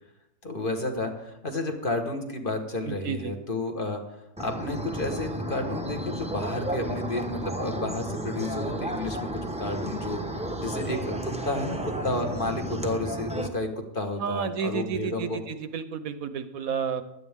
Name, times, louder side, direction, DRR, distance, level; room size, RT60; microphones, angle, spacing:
voice 1, 0.4-4.0 4.4-9.3 9.6-10.2 10.6-13.7 13.9-15.4, left 2 dB, 35° left, 4 dB, 1.5 m, -31 dB
voice 2, 2.9-3.3 14.2-17.0, right 7 dB, 70° right, 11 dB, 1.2 m, -31 dB
sound 1, 4.4-13.5, right 1 dB, 5° right, 0.7 m, -33 dB
16.5 x 11.0 x 3.6 m, 0.88 s
omnidirectional pair, 1.6 m